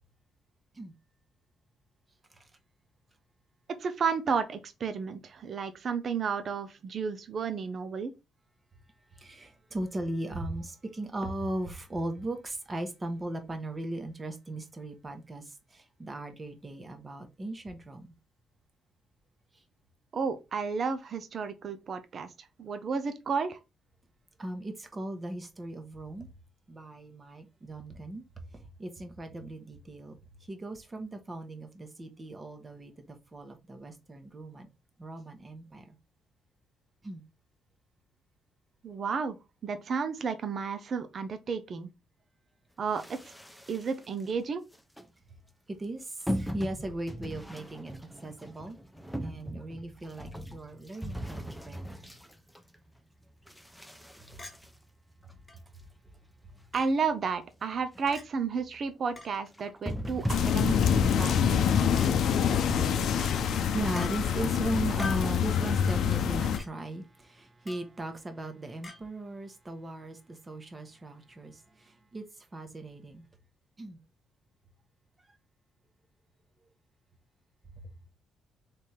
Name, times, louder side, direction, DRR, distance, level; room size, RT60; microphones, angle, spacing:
voice 1, 3.8-8.1 20.1-22.3 22.6-23.6 38.8-39.4 39.6-41.9 42.8-43.2 43.7-44.6 56.7-61.4, right 5 dB, 50° right, 0.7 m, -32 dB
voice 2, 9.1-18.1 24.4-26.3 26.7-30.2 30.5-34.7 35.0-36.0 37.0-37.2 45.7-48.8 49.2-52.0 54.3-54.4 62.2-73.2 73.8-74.0 77.8-77.9, right 1 dB, 25° right, 1.2 m, -38 dB
sound 1, 43.0-44.2 44.7-45.0 46.3-53.0 53.5-55.6 56.1-56.2 56.4-56.5 56.9-57.0 57.3-57.5 57.8-58.2 58.6-58.8 59.5-61.7, equal, ahead, 0.7 m, -39 dB
Chink clink, 54.4-54.6 55.5-55.6 56.7-56.9 58.1-58.2 59.2-59.3 60.5-60.7 62.0-62.1 63.2-63.4 63.9-64.1 65.0-65.3 66.5-66.7 67.7-67.9 68.8-69.0, left 3 dB, 20° left, 1.6 m, -41 dB
sound 2, 60.3-66.6, left 8 dB, 70° left, 0.6 m, -26 dB
3.4 x 3.4 x 4.4 m
cardioid pair, 90°, 0 cm